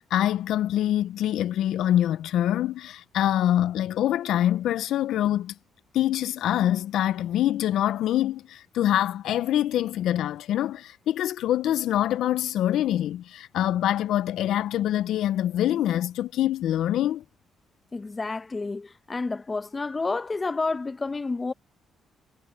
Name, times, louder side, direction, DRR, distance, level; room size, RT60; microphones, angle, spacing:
voice 1, 0.0-5.5 5.9-17.2, left 12 dB, 80° left, 0.4 m, -25 dB
voice 2, 17.9-21.5, left 3 dB, 25° left, 0.9 m, -30 dB
cardioid pair, 90°, 0 cm